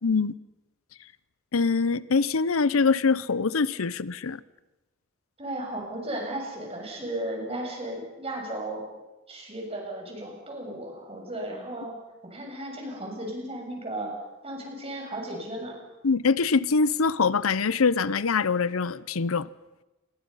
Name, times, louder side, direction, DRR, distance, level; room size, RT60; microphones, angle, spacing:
voice 1, 0.0-0.3 1.5-4.4 16.0-19.5, left 4 dB, 90° left, 0.7 m, -24 dB
voice 2, 5.4-8.8 9.3-12.0 12.2-14.1 14.4-15.8, right 1 dB, 30° right, 6.9 m, -35 dB
29.0 x 22.0 x 5.6 m
head